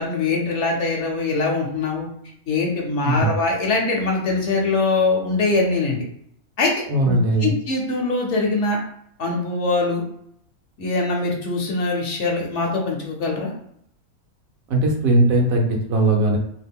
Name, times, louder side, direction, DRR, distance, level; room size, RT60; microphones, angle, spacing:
voice 1, 0.0-2.1 2.5-6.0 6.6-6.7 7.1-8.8 9.2-10.0 10.8-13.5, left 3 dB, 60° left, 0 dB, 0.9 m, -22 dB
voice 2, 6.9-7.5 14.7-16.4, right 2 dB, 75° right, 1 dB, 1.1 m, -19 dB
2.8 x 2.4 x 3.5 m, 0.70 s
omnidirectional pair, 1.5 m